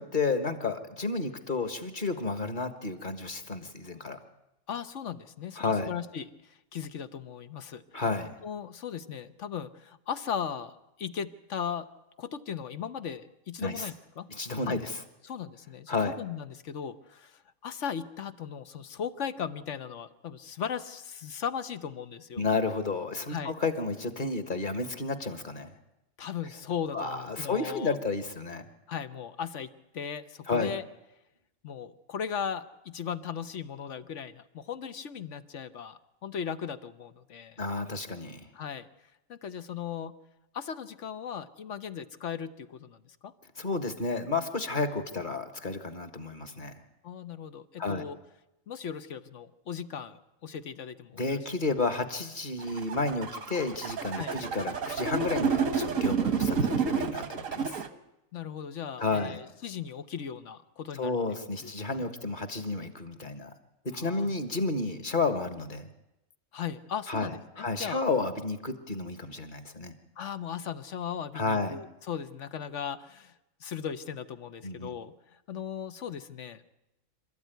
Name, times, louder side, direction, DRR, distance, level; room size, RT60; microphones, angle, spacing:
voice 1, 0.0-4.2 5.6-5.9 7.9-8.3 13.6-13.9 14.3-15.0 15.9-16.2 22.4-25.7 26.9-28.6 30.5-30.7 37.6-38.5 43.6-46.7 47.8-48.1 51.2-57.8 59.0-59.4 60.9-63.5 63.8-65.9 67.1-70.0 71.3-71.8 74.6-75.0, left 3 dB, 40° left, 9 dB, 1.7 m, -31 dB
voice 2, 4.7-7.8 8.4-11.9 12.2-14.3 14.7-14.8 15.2-22.4 23.3-23.5 26.2-28.0 28.9-30.8 31.6-37.6 38.5-38.9 39.3-40.1 40.5-43.3 47.0-48.2 48.7-51.4 54.2-54.3 56.7-57.1 58.3-61.2 61.6-62.0 64.0-64.3 66.5-68.0 70.2-73.3 73.6-75.1 75.5-76.6, left 7 dB, 65° left, 12 dB, 1.3 m, -37 dB
sound 1, 52.6-57.9, right 5 dB, 85° right, 1.7 m, -29 dB
26.5 x 13.5 x 9.3 m, 0.92 s
omnidirectional pair, 1.4 m